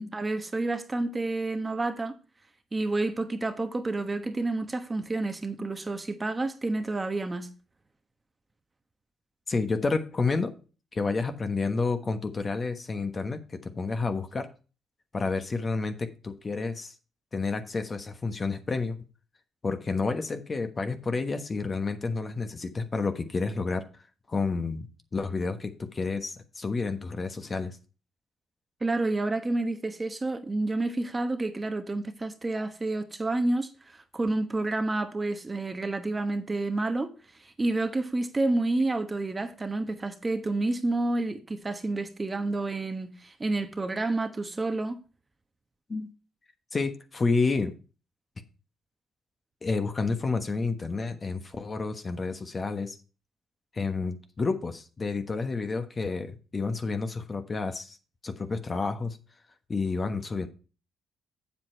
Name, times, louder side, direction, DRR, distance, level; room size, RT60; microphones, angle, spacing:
voice 1, 0.0-2.2 2.7-7.5 28.8-37.1 37.4-45.0, right 2 dB, 20° right, 1.1 m, -29 dB
voice 2, 9.5-10.5 10.9-14.5 15.1-16.9 17.3-19.0 19.6-23.8 24.3-27.8 45.9-46.1 46.7-47.7 49.6-53.0 53.7-58.0 58.2-59.2 59.7-60.5, left 4 dB, 35° left, 1.2 m, -30 dB
7.9 x 7.3 x 4.5 m
cardioid pair, 90°, 0 cm